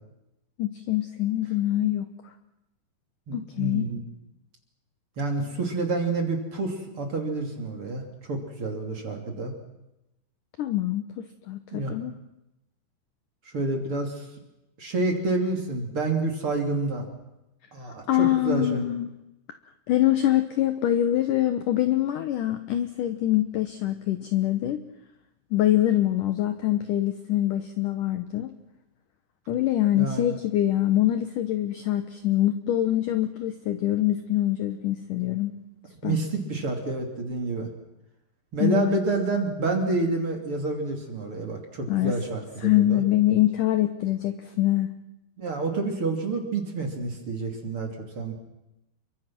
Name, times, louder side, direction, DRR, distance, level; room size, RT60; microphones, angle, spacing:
voice 1, 0.6-2.1 3.3-3.9 10.6-12.1 18.1-19.1 19.9-24.8 25.5-28.5 29.5-35.5 36.0-36.2 38.6-39.0 41.9-42.1 42.6-44.9, left 13 dB, 70° left, 9 dB, 2.0 m, -24 dB
voice 2, 3.3-4.0 5.2-9.5 11.7-11.9 13.5-14.3 14.8-17.1 17.7-18.8 30.0-30.3 36.0-37.7 38.5-43.0 45.4-47.9 48.1-48.3, right 3 dB, 35° right, 3 dB, 3.2 m, -28 dB
29.0 x 23.5 x 6.1 m, 0.93 s
omnidirectional pair, 4.9 m